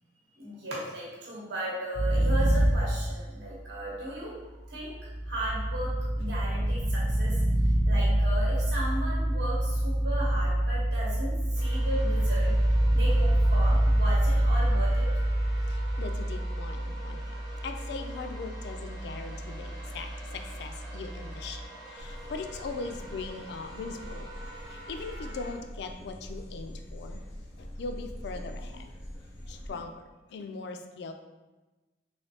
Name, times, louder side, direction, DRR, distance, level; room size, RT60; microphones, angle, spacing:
voice 1, 0.3-7.4 7.9-12.5 12.9-15.1, right 1 dB, 70° right, -6 dB, 1.0 m, -36 dB
sound 1, 1.9-3.7 4.7-21.6, right 1 dB, 45° right, 0.3 m, -27 dB
sound 2, 11.5-25.5, right 1 dB, 20° right, 0.7 m, -47 dB
voice 2, 15.7-17.4 17.6-24.3 24.7-27.2 27.6-28.9 29.5-31.1, left 4 dB, 65° left, 7 dB, 0.3 m, -40 dB
sound 3, 22.0-29.7, equal, 90° left, 0.8 m, -43 dB
3.2 x 3.1 x 2.7 m, 1.1 s
head